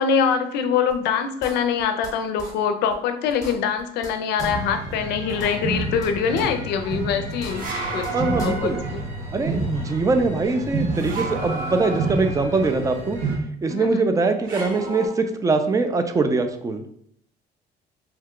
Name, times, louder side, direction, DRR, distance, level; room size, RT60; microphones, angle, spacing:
voice 1, 0.0-7.7 7.9-8.1 8.4-9.0 13.6-14.0, left 7 dB, 80° left, 8 dB, 0.4 m, -24 dB
sound 1, 0.9-1.0 1.4-2.1 2.4-2.5 2.9-3.0 3.3-4.1 4.4-4.5 4.9-5.0 5.3-6.1 6.4-6.5 6.9-7.0 7.3-8.1 8.4-8.5, left 1 dB, 20° left, 0.8 m, -38 dB
sound 2, 4.4-13.4, right 2 dB, 85° right, 0.9 m, -30 dB
sound 3, 5.3-5.8 7.5-9.2 10.9-12.6 14.4-15.1, right 2 dB, 55° right, 0.9 m, -32 dB
voice 2, 8.1-8.8 9.3-13.2 13.6-16.8, right 3 dB, 20° right, 7 dB, 0.3 m, -22 dB
2.8 x 2.2 x 3.6 m, 0.69 s
cardioid pair, 110°, 17 cm